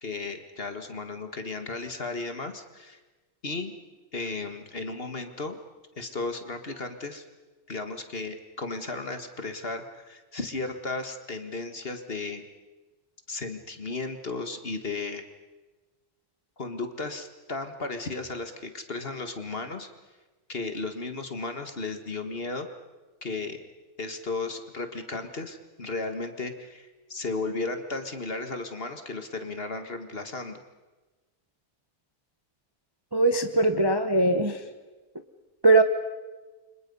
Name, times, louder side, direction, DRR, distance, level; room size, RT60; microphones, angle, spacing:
voice 1, 0.0-3.0 3.4-3.7 4.1-5.6 6.0-7.2 7.7-12.4 13.3-15.2 16.6-19.9 20.5-22.7 23.2-23.6 24.0-30.6, left 3 dB, 40° left, 7 dB, 1.9 m, -34 dB
voice 2, 33.1-34.6 35.6-35.8, right 2 dB, 20° right, 7 dB, 1.0 m, -20 dB
30.0 x 25.5 x 5.5 m, 1.2 s
omnidirectional pair, 1.7 m